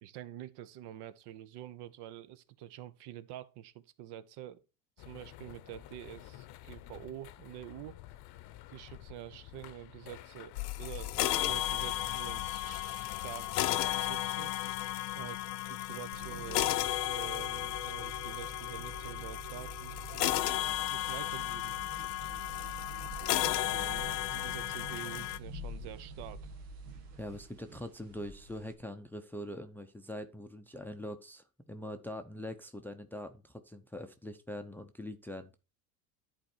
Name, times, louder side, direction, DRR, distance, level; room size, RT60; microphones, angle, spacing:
voice 1, 0.0-4.6 5.0-8.0 8.7-14.6 15.1-16.7 17.0-19.9 20.9-21.8 23.2-26.5, right 12 dB, 55° right, 1.0 m, -47 dB
sound 1, 5.0-13.3, left 14 dB, 55° left, 0.8 m, -51 dB
sound 2, 10.6-25.4, left 15 dB, 90° left, 0.8 m, -34 dB
sound 3, 16.1-28.7, right 3 dB, 85° right, 1.9 m, -47 dB
voice 2, 27.2-35.5, left 1 dB, 5° left, 0.6 m, -43 dB
10.5 x 4.4 x 4.4 m
supercardioid pair, 110°, 47 cm